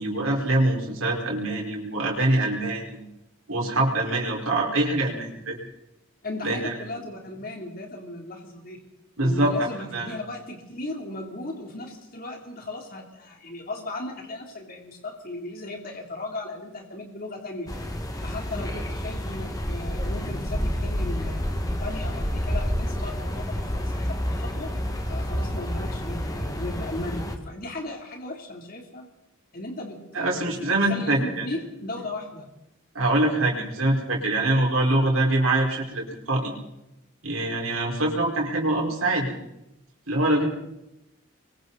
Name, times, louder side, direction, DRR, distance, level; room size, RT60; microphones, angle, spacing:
voice 1, 0.0-3.1 3.5-5.6 6.4-6.7 9.2-9.5 9.9-10.1 30.1-31.4 32.9-36.5 37.2-39.3 40.1-40.5, right 1 dB, 75° right, -2 dB, 4.9 m, -24 dB
voice 2, 6.2-8.8 9.2-17.7 18.2-24.7 25.1-29.1 29.5-32.5, left 2 dB, 45° left, 1 dB, 3.4 m, -36 dB
sound 1, 17.7-27.4, equal, 15° left, 1.8 m, -29 dB
27.0 x 23.5 x 4.2 m, 0.89 s
head